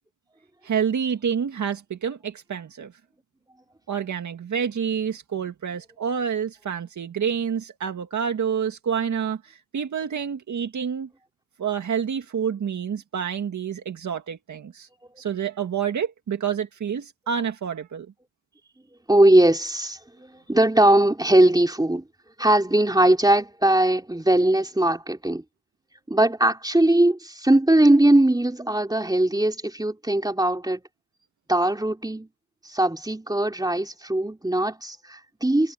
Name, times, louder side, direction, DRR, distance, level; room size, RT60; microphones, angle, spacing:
voice 1, 0.6-2.9 3.9-11.1 11.6-14.9 15.2-18.1, right 7 dB, 75° right, 2.0 m, -28 dB
voice 2, 19.1-22.0 22.4-25.4 26.1-30.8 31.5-32.3 32.7-35.7, right 1 dB, 15° right, 3.6 m, -20 dB
cardioid pair, 55°, 30 cm